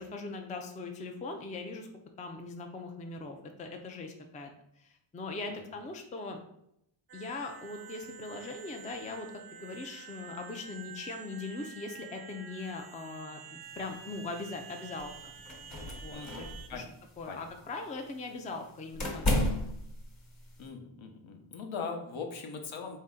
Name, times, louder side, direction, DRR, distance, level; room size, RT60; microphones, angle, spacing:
voice 1, 0.0-1.9 2.2-4.5 4.8-6.4 7.1-15.3 16.0-16.8 17.2-19.4, left 3 dB, 15° left, 4 dB, 0.3 m, -40 dB
sound 1, 7.1-16.7, right 7 dB, 50° right, 0.5 m, -49 dB
sound 2, 13.6-20.7, left 1 dB, 35° left, 1.1 m, -35 dB
voice 2, 16.1-16.9 17.3-17.4 20.6-23.0, left 5 dB, 65° left, 3 dB, 0.8 m, -40 dB
4.1 x 2.7 x 3.6 m, 0.78 s
wide cardioid pair, 115°, 50 cm